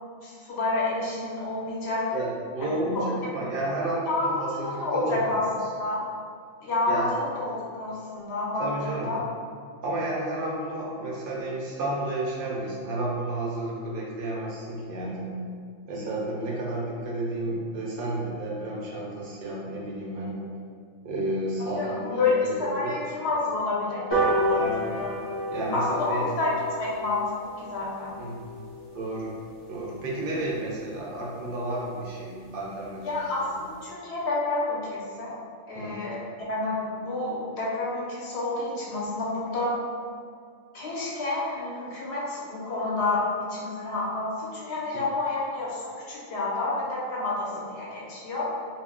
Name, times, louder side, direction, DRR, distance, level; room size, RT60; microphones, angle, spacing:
voice 1, 0.2-2.0 2.6-3.1 4.1-4.4 4.6-5.4 5.8-6.0 6.6-9.2 21.8-24.6 25.0-25.1 25.7-27.2 27.6-28.2 33.0-35.3 35.7-36.2 36.5-39.8 40.7-48.5, left 2 dB, 60° left, -5 dB, 0.8 m, -29 dB
voice 2, 2.1-5.4 6.9-7.1 8.6-9.1 9.8-15.4 15.9-20.5 21.0-23.0 24.5-25.0 25.5-26.3 28.2-28.6 28.9-29.4 29.7-33.2 33.6-33.7 35.7-35.9 47.4-47.6, right 2 dB, 65° right, -4 dB, 0.5 m, -31 dB
sound 1, 24.1-30.9 31.3-31.4 31.7-31.8 32.1-32.2 32.5-32.6 32.8-33.1 33.5-33.6, equal, 30° left, 0.6 m, -31 dB
2.2 x 2.0 x 3.6 m, 2.1 s
omnidirectional pair, 1.3 m